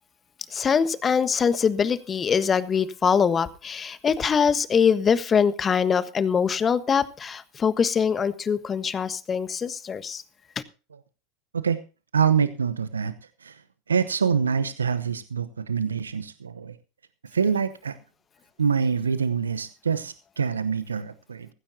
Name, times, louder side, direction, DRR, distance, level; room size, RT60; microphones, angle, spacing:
voice 1, 0.5-10.2 10.5-10.6, left 6 dB, 25° left, 13 dB, 1.3 m, -23 dB
voice 2, 12.1-13.1 13.4-13.6 13.9-16.7 17.3-18.0 18.6-21.5, right 6 dB, 85° right, 13 dB, 0.9 m, -25 dB
17.0 x 15.5 x 2.8 m, 0.33 s
figure-of-eight pair, 85°, 0 cm